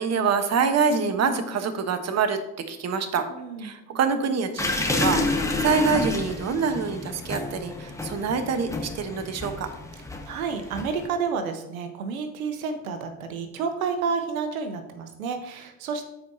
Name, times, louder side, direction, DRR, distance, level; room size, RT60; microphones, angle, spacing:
voice 1, 0.0-2.4 2.7-3.2 3.6-9.7, right 5 dB, 40° right, 8 dB, 1.1 m, -25 dB
voice 2, 3.3-3.8 10.3-16.0, right 5 dB, 90° right, 7 dB, 0.9 m, -30 dB
sound 1, 4.6-11.1, left 3 dB, 5° left, 1.2 m, -29 dB
14.0 x 4.8 x 2.8 m, 0.91 s
hypercardioid pair, 80°, 41 cm